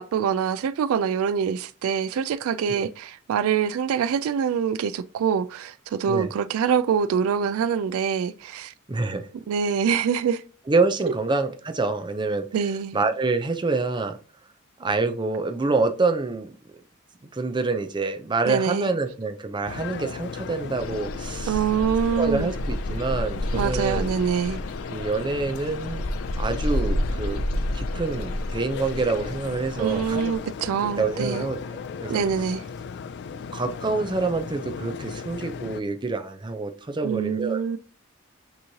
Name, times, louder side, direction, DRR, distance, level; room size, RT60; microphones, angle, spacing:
voice 1, 0.0-8.7 9.5-10.4 12.5-13.0 18.5-18.9 21.5-22.5 23.5-24.6 29.8-31.4 32.1-32.6 37.0-37.8, right 7 dB, 75° right, 0.3 m, -25 dB
voice 2, 8.9-9.3 10.7-12.5 12.9-14.2 14.8-16.6 17.3-21.6 22.1-24.0 24.9-26.0 26.4-27.4 27.7-30.2 30.8-32.2 33.3-37.6, right 3 dB, 20° right, 0.5 m, -26 dB
sound 1, 19.7-35.8, left 6 dB, 55° left, 0.3 m, -36 dB
sound 2, 20.8-30.4, left 1 dB, 85° left, 0.7 m, -30 dB
6.2 x 3.1 x 2.7 m
head